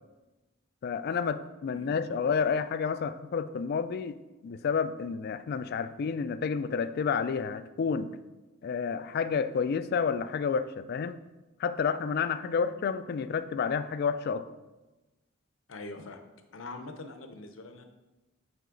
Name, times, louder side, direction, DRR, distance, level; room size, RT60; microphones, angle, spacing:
voice 1, 0.8-4.2 4.4-8.1 8.6-11.2 11.6-14.5, left 6 dB, 50° left, 13 dB, 0.3 m, -30 dB
voice 2, 1.7-2.1 12.6-12.7 15.7-16.2 16.5-17.8, left 2 dB, 75° left, 6 dB, 0.7 m, -43 dB
8.3 x 4.1 x 3.8 m, 1.1 s
head